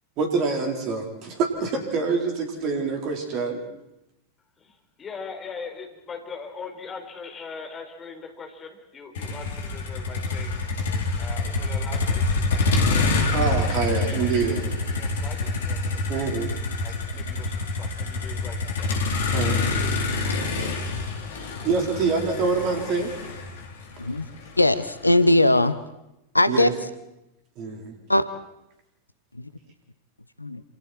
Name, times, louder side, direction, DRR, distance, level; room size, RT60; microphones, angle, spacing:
voice 1, 0.2-3.6 13.3-14.7 16.1-16.5 19.3-19.6 20.5-20.7 21.6-23.2 26.5-26.7 27.6-28.0, right 4 dB, 40° right, 2 dB, 4.6 m, -26 dB
voice 2, 4.6-10.6 11.2-13.4 13.8-16.3 16.8-19.0 19.4-21.5 22.7-23.0, left 5 dB, 20° left, 3 dB, 4.5 m, -41 dB
Motor vehicle (road), 9.1-25.3, left 3 dB, 60° left, 3.8 m, -26 dB
voice 3, 24.6-25.8 26.3-26.7 28.1-28.2 29.4-29.5 30.4-30.6, left 1 dB, 85° left, 13 dB, 0.9 m, -19 dB
28.0 x 27.5 x 4.6 m, 0.89 s
figure-of-eight pair, 90°, 0 cm